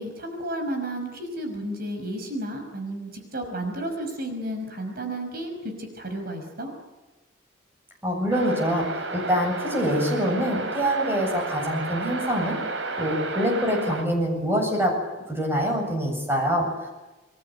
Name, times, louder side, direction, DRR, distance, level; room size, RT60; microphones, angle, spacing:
voice 1, 0.0-6.7, right 1 dB, 50° right, 5 dB, 5.6 m, -32 dB
voice 2, 8.0-8.9 9.1-12.6 13.0-14.9 15.3-16.9, equal, 10° right, 2 dB, 7.8 m, -25 dB
sound 1, 8.3-14.0, right 3 dB, 70° right, 3.6 m, -32 dB
29.0 x 21.5 x 8.0 m, 1.1 s
head